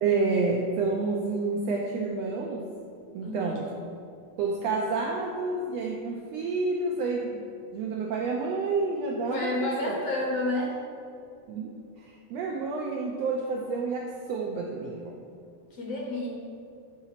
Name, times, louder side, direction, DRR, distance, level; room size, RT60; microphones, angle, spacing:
voice 1, 0.0-2.6 3.1-3.7 4.4-10.0 11.5-15.2, right 3 dB, 80° right, 0 dB, 1.5 m, -29 dB
voice 2, 3.2-3.6 9.3-10.7 15.8-16.3, left 2 dB, 60° left, -2 dB, 1.7 m, -30 dB
8.8 x 4.0 x 5.6 m, 2.4 s
omnidirectional pair, 3.6 m